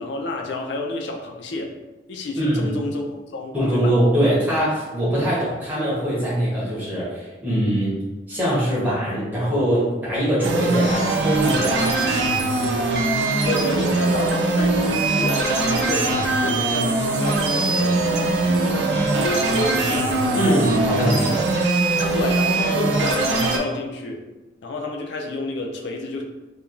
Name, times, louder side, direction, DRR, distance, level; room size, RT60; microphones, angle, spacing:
voice 1, 0.0-1.8 2.1-3.9 13.4-18.0 18.6-20.7 22.1-24.2 24.6-26.2, left 2 dB, 70° left, 1 dB, 0.4 m, -29 dB
voice 2, 2.4-2.7 3.5-7.9 8.3-11.9 20.3-21.4, right 1 dB, 10° right, -9 dB, 0.9 m, -22 dB
sound 1, 10.4-23.6, right 2 dB, 65° right, 0.4 m, -21 dB
3.0 x 2.3 x 2.4 m, 1.1 s
head